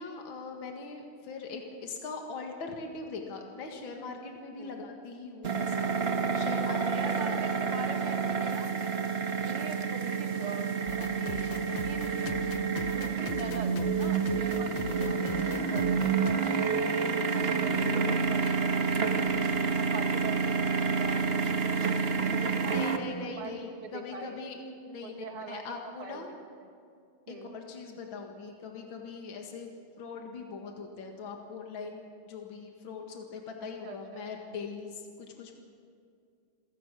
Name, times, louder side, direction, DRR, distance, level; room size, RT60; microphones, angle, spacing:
voice 1, 0.0-7.4 22.7-24.6 24.9-26.3 27.3-29.7 30.0-35.5, left 4 dB, 65° left, 2 dB, 2.6 m, -41 dB
sound 1, 5.4-23.0, right 5 dB, 35° right, 1.1 m, -29 dB
voice 2, 6.6-9.0 9.4-12.3 12.9-19.5 19.8-23.0 23.4-24.4 25.0-25.6 26.0-26.3 27.3-27.6 33.8-34.3, right 4 dB, 75° right, 5 dB, 2.6 m, -43 dB
sound 2, 10.9-16.4, left 6 dB, 90° left, 1.9 m, -41 dB
28.0 x 17.0 x 6.2 m, 2.3 s
omnidirectional pair, 2.4 m